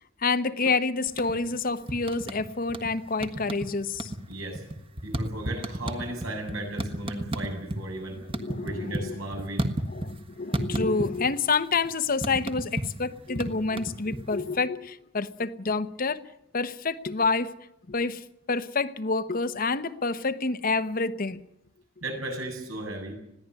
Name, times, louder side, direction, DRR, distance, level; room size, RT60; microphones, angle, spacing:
voice 1, 0.2-4.1 8.3-9.2 9.9-16.2 16.5-17.5 17.9-21.4, left 4 dB, 45° left, 0.9 m, -28 dB
sound 1, 1.1-1.6 1.9-2.9 3.2-3.7 3.9-7.8 8.1-10.2 10.5-11.4 11.6-14.5, right 1 dB, 25° right, 1.5 m, -32 dB
voice 2, 4.3-4.6 5.0-8.2 8.6-9.7 22.0-23.1, right 1 dB, 80° right, 7.9 m, -35 dB
21.0 x 16.0 x 9.5 m
head